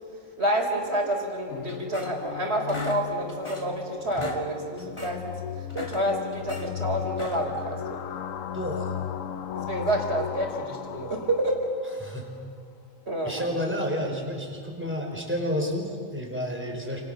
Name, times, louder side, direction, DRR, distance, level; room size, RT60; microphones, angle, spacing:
voice 1, 0.4-5.3 5.7-8.0 9.6-11.6 13.1-13.4, right 1 dB, 55° right, 2 dB, 4.5 m, -28 dB
sound 1, 1.5-12.3, left 9 dB, 80° left, 1.2 m, -36 dB
sound 2, 1.7-2.4 2.7-3.8 4.1-4.4 4.8-5.2 5.6-6.7 7.1-7.6, left 2 dB, 20° left, 2.8 m, -40 dB
voice 2, 8.5-8.9 12.0-12.3 13.2-17.0, equal, 10° right, 1 dB, 5.0 m, -30 dB
30.0 x 28.5 x 6.8 m, 2.3 s
omnidirectional pair, 1.4 m